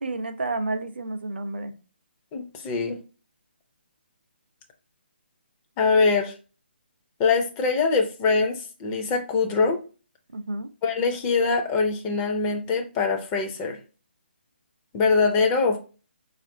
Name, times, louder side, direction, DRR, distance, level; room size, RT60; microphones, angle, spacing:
voice 1, 0.0-1.8 10.3-10.7, right 2 dB, 65° right, 0.5 m, -30 dB
voice 2, 2.3-3.0 5.8-6.3 7.2-9.8 10.8-13.8 14.9-15.8, left 4 dB, 20° left, 0.4 m, -23 dB
4.1 x 2.4 x 2.6 m
figure-of-eight pair, 140°, 6 cm